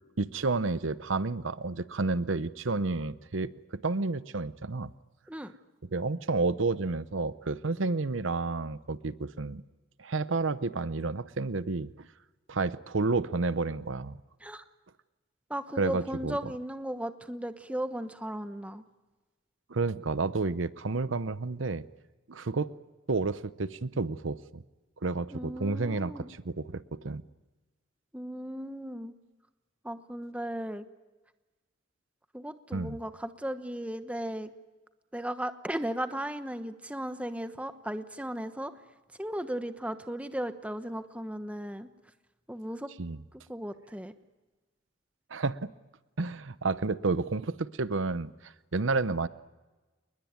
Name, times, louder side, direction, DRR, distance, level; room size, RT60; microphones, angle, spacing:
voice 1, 0.2-4.9 5.9-9.6 10.0-12.1 12.5-14.2 15.8-16.5 19.7-21.8 22.3-22.7 23.1-24.6 25.0-27.2 32.7-33.0 43.0-43.2 45.3-45.6 46.2-49.3, right 3 dB, 80° right, 15 dB, 0.8 m, -30 dB
voice 2, 15.5-18.8 25.3-26.3 28.1-29.1 29.8-30.8 32.3-34.5 35.1-38.7 39.2-41.9 42.5-42.9 43.5-44.1, right 1 dB, 5° right, 9 dB, 1.1 m, -36 dB
29.0 x 21.0 x 9.5 m, 1.2 s
head